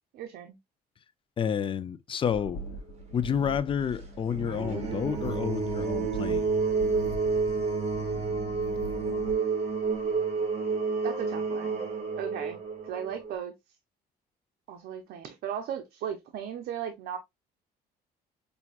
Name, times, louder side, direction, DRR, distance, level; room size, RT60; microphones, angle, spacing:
voice 1, 0.1-0.6 11.0-11.8 12.2-12.6 12.8-13.5 14.7-17.2, right 9 dB, 70° right, 0.7 m, -36 dB
voice 2, 1.4-2.6 3.1-6.5, left 8 dB, 30° left, 0.4 m, -30 dB
sound 1, 2.2-9.3, right 1 dB, 75° left, 1.4 m, -41 dB
sound 2, 4.3-13.3, right 4 dB, 40° right, 2.3 m, -30 dB
5.8 x 2.7 x 2.4 m
cardioid pair, 110°, 17 cm